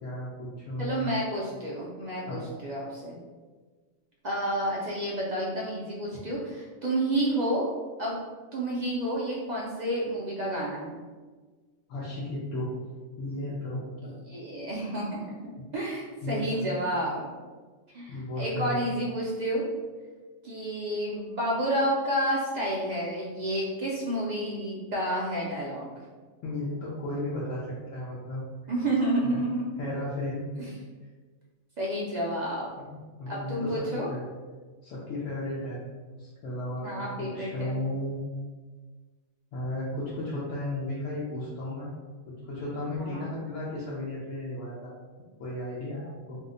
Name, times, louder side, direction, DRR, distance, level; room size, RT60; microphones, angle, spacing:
voice 1, 0.0-1.1 2.2-2.4 6.1-6.2 11.9-12.7 13.2-14.1 16.2-16.6 18.1-18.9 26.4-28.4 29.2-29.4 29.8-30.5 32.8-34.2 34.8-35.8 36.2-38.2 39.5-41.9 42.3-44.9 45.4-46.4, left 1 dB, 85° left, -7 dB, 1.0 m, -34 dB
voice 2, 0.8-3.2 4.2-7.7 8.0-8.2 8.5-11.0 14.0-17.3 17.9-19.6 20.4-25.9 28.7-29.7 30.6-30.7 31.8-32.7 33.3-34.1 36.8-37.8 43.0-43.3, right 1 dB, 60° right, -4 dB, 0.4 m, -30 dB
2.7 x 2.1 x 3.7 m, 1.4 s
omnidirectional pair, 1.3 m